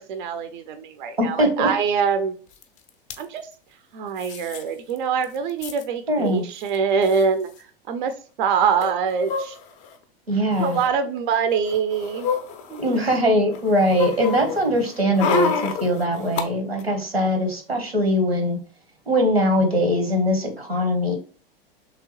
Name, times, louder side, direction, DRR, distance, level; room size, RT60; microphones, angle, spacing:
voice 1, 0.0-2.3 3.2-3.5 3.9-7.5 7.9-8.1 8.4-9.6 10.6-12.3 12.7-12.8, right 6 dB, 55° right, 8 dB, 0.4 m, -24 dB
voice 2, 1.2-1.7 6.1-6.5 10.3-10.8 12.8-18.6 19.1-21.1, equal, 90° right, 5 dB, 1.0 m, -21 dB
sound 1, 2.6-2.7 2.9-3.2 4.2-4.6 5.0-5.1 5.2-5.8 6.7-6.8 7.0-7.2 8.8-9.9 10.5-10.9 11.5-13.2 13.5-16.4 16.8-16.9, left 5 dB, 25° left, 0.4 m, -28 dB
3.2 x 2.8 x 2.9 m, 0.39 s
figure-of-eight pair, 90°, 30 cm